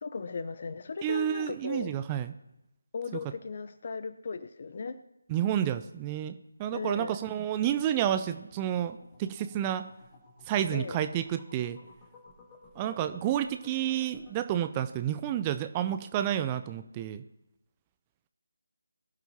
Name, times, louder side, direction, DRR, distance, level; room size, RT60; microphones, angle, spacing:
voice 1, 0.0-1.9 2.9-5.0 6.7-7.2 10.7-11.0, left 5 dB, 40° left, 13 dB, 0.8 m, -37 dB
voice 2, 1.0-2.3 5.3-9.9 10.5-11.8 12.8-17.2, right 10 dB, 15° right, 10 dB, 0.4 m, -30 dB
sound 1, 7.8-14.3, left 2 dB, 15° left, 3.1 m, -56 dB
22.5 x 11.5 x 2.9 m, 0.90 s
figure-of-eight pair, 155°, 0 cm